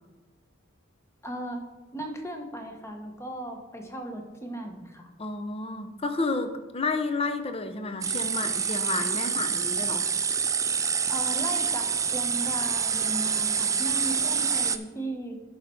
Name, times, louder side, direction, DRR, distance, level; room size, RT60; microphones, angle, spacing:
voice 1, 1.2-1.6 1.9-5.1 11.1-15.5, right 1 dB, 15° left, 4 dB, 1.1 m, -37 dB
voice 2, 5.2-10.1, left 3 dB, 30° left, 8 dB, 0.7 m, -31 dB
sound 1, 8.0-14.8, right 6 dB, 15° right, 0.3 m, -27 dB
10.5 x 5.5 x 4.5 m, 1.1 s
head